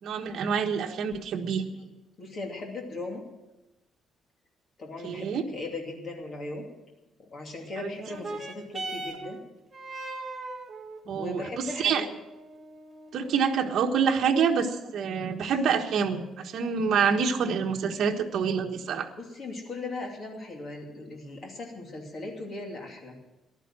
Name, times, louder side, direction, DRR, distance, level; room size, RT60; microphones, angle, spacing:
voice 1, 0.0-1.7 5.0-5.4 7.8-7.9 11.1-12.0 13.1-19.1, right 6 dB, 55° right, 2 dB, 1.4 m, -27 dB
voice 2, 2.2-3.2 4.8-6.6 7.3-9.4 11.1-12.0 19.2-23.2, left 2 dB, 35° left, 1 dB, 2.7 m, -38 dB
sound 1, 7.9-16.9 17.7-17.8, right 2 dB, 20° right, 1.7 m, -42 dB
14.5 x 11.5 x 7.6 m, 0.99 s
cardioid pair, 175°, 0 cm